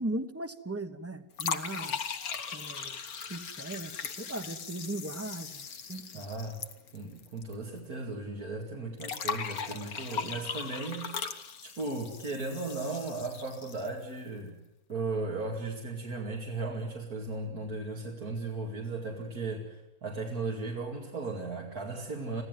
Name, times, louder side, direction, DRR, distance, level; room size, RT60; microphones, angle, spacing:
voice 1, 0.0-2.0 2.5-3.0 3.3-6.2, right 1 dB, 10° right, 10 dB, 1.1 m, -38 dB
sound 1, 1.3-7.5 7.8-7.9 9.0-14.0, left 6 dB, 75° left, 1.8 m, -38 dB
voice 2, 6.1-6.6 6.9-14.6 14.9-22.4, right 3 dB, 85° right, -2 dB, 3.0 m, -36 dB
25.0 x 16.0 x 9.4 m, 0.92 s
omnidirectional pair, 1.5 m